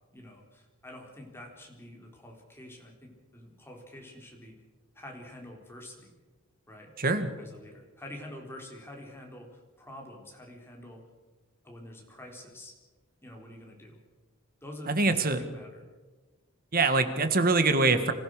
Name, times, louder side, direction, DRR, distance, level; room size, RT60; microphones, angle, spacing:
voice 1, 0.1-4.6 4.9-6.1 6.7-6.9 7.4-11.0 11.6-12.7 13.2-14.0 14.6-15.8, left 1 dB, 10° left, 0 dB, 4.0 m, -47 dB
voice 2, 7.0-7.3 14.9-15.4 16.7-18.1, right 3 dB, 45° right, 9 dB, 1.6 m, -24 dB
26.5 x 15.5 x 6.5 m, 1.3 s
head